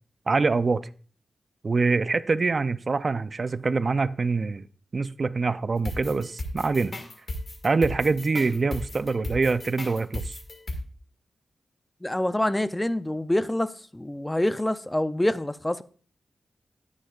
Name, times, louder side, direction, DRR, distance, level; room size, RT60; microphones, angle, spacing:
voice 1, 0.3-0.9 1.6-4.7 4.9-6.9 7.6-10.3, right 4 dB, 45° right, 0.4 m, -25 dB
sound 1, 5.8-10.8, left 1 dB, 45° left, 1.8 m, -35 dB
voice 2, 12.0-15.8, left 1 dB, 10° left, 0.5 m, -26 dB
18.5 x 6.4 x 2.4 m
wide cardioid pair, 90°, 0 cm